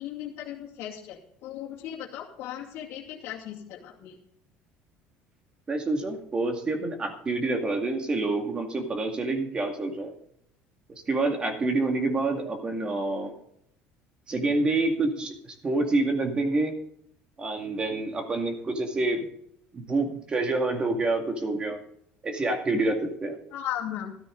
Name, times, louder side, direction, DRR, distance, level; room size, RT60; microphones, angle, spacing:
voice 1, 0.0-4.2 23.5-24.2, left 11 dB, 60° left, -3 dB, 2.4 m, -37 dB
voice 2, 5.7-10.1 11.1-13.3 14.3-16.7 17.4-19.3 19.7-21.8 22.2-23.4, right 2 dB, 20° right, 4 dB, 2.1 m, -27 dB
13.0 x 13.0 x 3.9 m, 0.72 s
cardioid pair, 150°, 5 cm